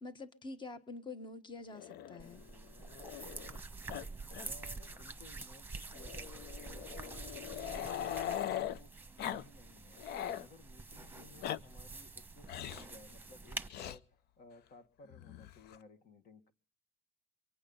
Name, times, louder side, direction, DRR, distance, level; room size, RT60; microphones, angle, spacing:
voice 1, 0.0-2.4, left 3 dB, 25° left, 1.4 m, -46 dB
Growling, 1.7-3.6 3.9-4.1 4.3-4.5 4.8-4.9 5.9-8.8 9.2-9.4 9.8-10.5 11.2-11.6 12.5-12.9 13.7-14.0 15.1-15.8, left 10 dB, 75° left, 0.7 m, -41 dB
sound 1, 2.2-13.7, right 3 dB, 10° right, 1.3 m, -47 dB
voice 2, 4.4-10.0 10.4-16.5, left 2 dB, 55° left, 2.0 m, -58 dB
24.0 x 8.8 x 5.6 m
cardioid pair, 110°, 17 cm